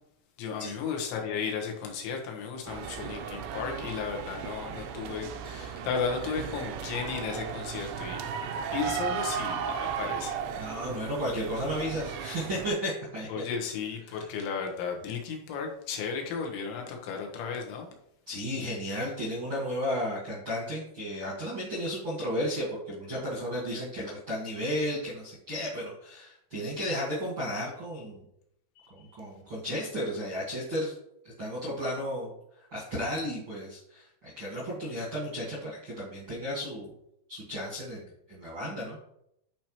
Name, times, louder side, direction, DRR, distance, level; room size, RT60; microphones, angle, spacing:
voice 1, 0.4-8.2 8.7-10.4 13.3-17.9 28.8-28.9, left 6 dB, 90° left, 2 dB, 3.6 m, -34 dB
sound 1, 2.7-12.7, right 7 dB, 85° right, 2.9 m, -35 dB
voice 2, 10.6-13.4 14.1-14.3 18.3-28.2 28.9-30.9 31.4-32.3 32.7-36.9 37.3-39.0, equal, 60° right, -6 dB, 1.3 m, -33 dB
10.5 x 4.4 x 3.0 m, 0.76 s
omnidirectional pair, 5.1 m